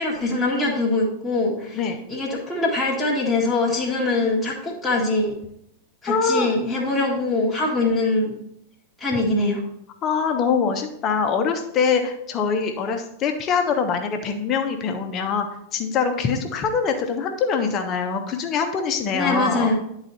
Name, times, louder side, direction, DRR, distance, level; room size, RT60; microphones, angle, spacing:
voice 1, 0.0-1.8 2.1-5.3 6.0-8.3 9.0-9.6 19.1-19.7, left 2 dB, 5° left, -7 dB, 1.7 m, -23 dB
voice 2, 6.1-6.5 10.0-15.5 15.7-19.7, left 5 dB, 30° left, 5 dB, 1.1 m, -23 dB
10.5 x 4.0 x 4.2 m, 0.76 s
figure-of-eight pair, 95°, 0 cm